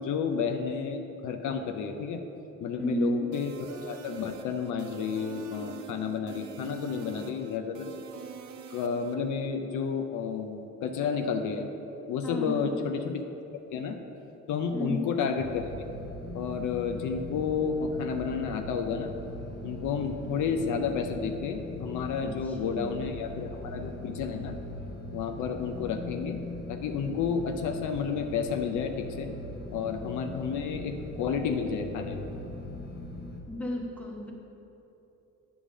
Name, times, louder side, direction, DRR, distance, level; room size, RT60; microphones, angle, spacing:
voice 1, 0.0-2.2 2.6-7.9 8.7-11.7 12.1-13.2 13.5-14.0 14.5-15.7 16.3-19.1 19.6-24.6 25.1-26.4 26.7-29.3 29.7-32.3, left 6 dB, 80° left, 6 dB, 0.6 m, -31 dB
voice 2, 2.8-3.3 12.2-12.8 14.7-15.1 22.2-23.1 33.5-34.3, equal, 5° left, -1 dB, 1.2 m, -33 dB
sound 1, 3.3-9.1, right 5 dB, 70° right, 0.6 m, -45 dB
sound 2, 15.4-33.4, left 1 dB, 35° left, 0.9 m, -40 dB
8.5 x 3.6 x 6.1 m, 3.0 s
cardioid pair, 90°, 30 cm